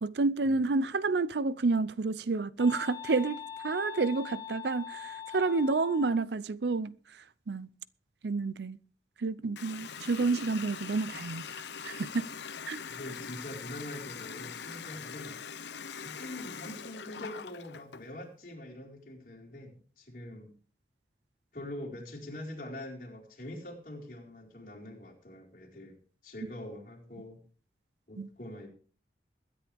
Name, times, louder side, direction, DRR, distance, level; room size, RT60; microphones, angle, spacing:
voice 1, 0.0-6.9 7.5-7.7 8.2-8.8 9.2-12.3 12.7-12.8 28.2-28.3, right 3 dB, 70° right, 0.6 m, -29 dB
sound 1, 2.6-6.2, left 8 dB, 25° left, 1.3 m, -42 dB
Water tap faucet, 9.6-18.1, left 6 dB, 75° left, 0.8 m, -42 dB
voice 2, 12.9-15.4 16.0-20.5 21.5-25.9 26.2-27.4 28.1-28.7, left 1 dB, 50° left, 4.5 m, -44 dB
22.0 x 10.0 x 3.5 m
head